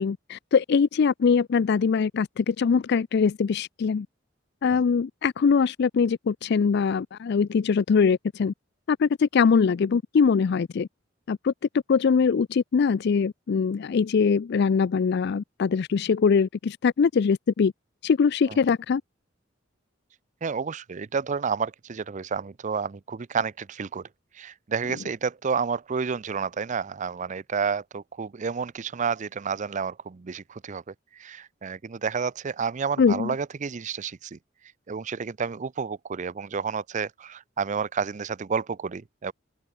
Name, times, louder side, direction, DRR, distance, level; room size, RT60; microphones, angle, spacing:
voice 1, 0.0-4.1 4.6-8.5 8.9-10.9 11.3-11.5 11.9-17.7 18.0-19.0 33.0-33.3, left 5 dB, 60° left, 0.4 m, -22 dB
voice 2, 20.4-24.1 24.3-34.4 34.9-39.3, right 6 dB, 40° right, 0.5 m, -30 dB
open air
head